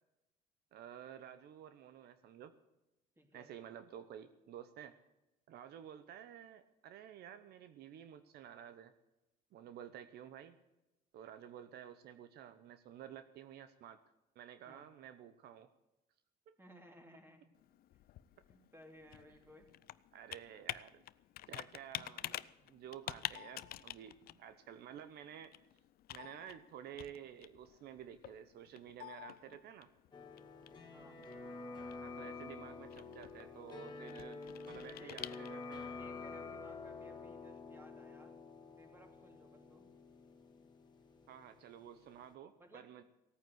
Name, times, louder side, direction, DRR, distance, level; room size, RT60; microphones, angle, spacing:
voice 1, 0.7-2.5 3.3-4.9 5.5-8.9 9.5-10.6 11.1-14.0 14.3-15.7 16.5-16.6 20.1-21.0 21.5-25.5 26.1-29.9 32.0-34.4 34.7-35.9 41.3-43.0, right 9 dB, 70° right, 11 dB, 0.9 m, -52 dB
voice 2, 3.2-3.5 14.6-14.9 16.6-17.5 18.5-19.7 30.9-31.2 35.0-35.2 36.0-38.4 38.8-39.9 42.6-43.0, equal, 15° right, 3 dB, 3.1 m, -59 dB
Computer keyboard, 17.5-35.8, left 14 dB, 65° left, 0.5 m, -49 dB
sound 1, 30.1-41.8 42.1-42.2, left 4 dB, 25° left, 1.9 m, -49 dB
16.5 x 9.3 x 7.9 m, 0.95 s
cardioid pair, 110°, 17 cm